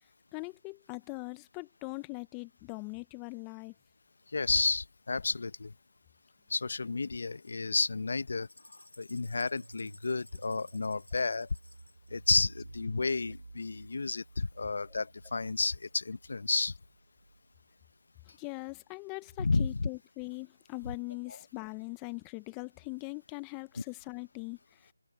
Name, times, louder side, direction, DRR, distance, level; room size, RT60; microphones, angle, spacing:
voice 1, 0.3-3.7 18.4-24.9, left 31 dB, 15° left, 0.9 m, -41 dB
voice 2, 4.3-5.7 6.5-11.5 12.1-16.7 19.4-19.9 21.3-21.4, left 3 dB, 55° left, 0.9 m, -31 dB
sound 1, 8.4-12.1, left 1 dB, 85° left, 7.8 m, -57 dB
sound 2, 9.1-17.8, right 2 dB, 70° right, 3.1 m, -53 dB
figure-of-eight pair, 160°, 0 cm